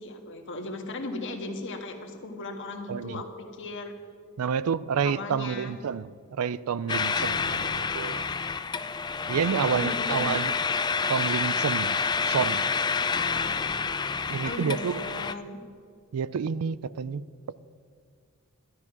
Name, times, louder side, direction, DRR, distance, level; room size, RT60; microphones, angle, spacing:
voice 1, 0.0-3.9 5.0-5.8 9.5-10.3 13.1-13.7 14.4-15.6, left 2 dB, 60° left, 1.7 m, -37 dB
voice 2, 2.9-3.2 4.4-8.2 9.3-10.5 11.1-12.0 12.3-12.7 14.3-15.0 16.1-17.3, right 6 dB, 85° right, 0.4 m, -29 dB
sound 1, 6.9-15.3, left 5 dB, 20° left, 0.3 m, -28 dB
13.5 x 12.5 x 6.0 m
head